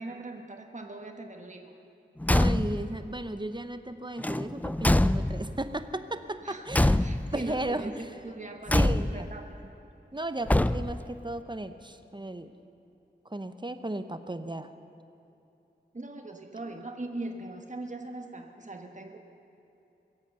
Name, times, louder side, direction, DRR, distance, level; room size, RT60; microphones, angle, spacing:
voice 1, 0.0-1.7 6.4-6.6 7.0-9.7 15.9-19.2, right 2 dB, 40° right, 3 dB, 1.2 m, -40 dB
Car / Truck / Slam, 2.2-2.9 4.2-5.6 6.7-7.5 8.7-9.4 10.5-11.1, left 1 dB, 10° left, 0.3 m, -25 dB
voice 2, 2.3-7.0 7.3-8.1 8.7-9.3 10.1-12.5 13.3-14.7, right 1 dB, 25° right, 10 dB, 0.8 m, -35 dB
22.5 x 8.1 x 6.9 m, 2.8 s
wide cardioid pair, 45°, 19 cm